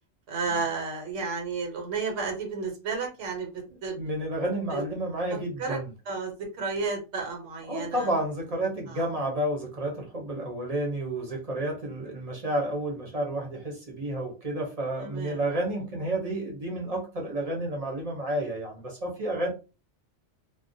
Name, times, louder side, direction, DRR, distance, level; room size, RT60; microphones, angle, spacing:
voice 1, 0.3-4.0 4.7-4.8 5.6-5.8 6.1-8.1 8.9-9.1 15.0-15.4, right 4 dB, 85° right, 1 dB, 1.1 m, -32 dB
voice 2, 3.9-5.9 7.7-19.5, right 1 dB, 40° right, 0 dB, 0.6 m, -31 dB
2.3 x 2.1 x 2.6 m, 0.31 s
omnidirectional pair, 1.2 m